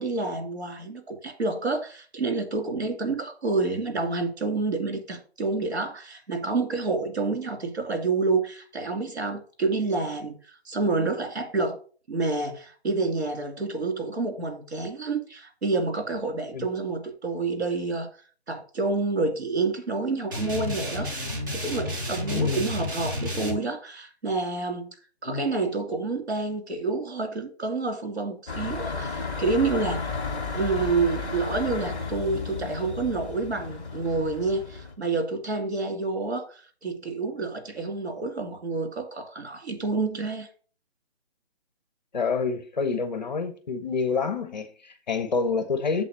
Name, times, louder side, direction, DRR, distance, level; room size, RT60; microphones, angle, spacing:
voice 1, 0.0-10.4 10.6-11.8 12.1-18.1 18.5-24.9 25.2-30.1 30.5-40.5, right 3 dB, 70° right, 2.7 m, -28 dB
sound 1, 20.3-23.5, left 1 dB, 20° right, 1.1 m, -31 dB
voice 2, 22.3-22.7 25.2-25.4 42.1-46.0, left 4 dB, 40° left, 0.9 m, -27 dB
sound 2, 28.5-34.9, left 4 dB, 10° left, 0.7 m, -33 dB
7.5 x 4.0 x 6.8 m
figure-of-eight pair, 165°, 33 cm